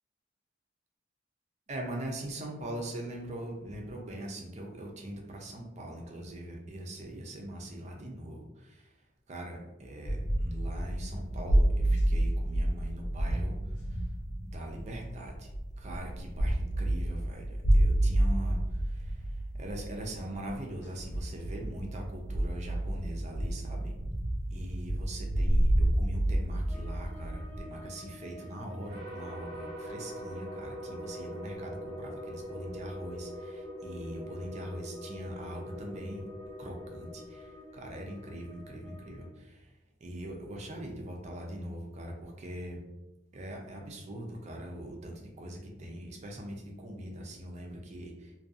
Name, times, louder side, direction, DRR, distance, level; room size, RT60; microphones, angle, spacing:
voice 1, 1.7-8.9 9.3-13.6 13.9-14.0 14.4-15.5 15.8-23.9 24.5-36.2 36.6-39.7 40.0-42.8 43.3-48.4, right 1 dB, 40° right, 1 dB, 0.4 m, -42 dB
sound 1, 10.0-27.6, right 1 dB, 65° left, 0.6 m, -29 dB
sound 2, 26.7-39.3, equal, 15° left, 0.5 m, -51 dB
sound 3, 28.9-38.2, equal, 80° right, 0.6 m, -43 dB
2.6 x 2.2 x 2.4 m, 1.0 s
head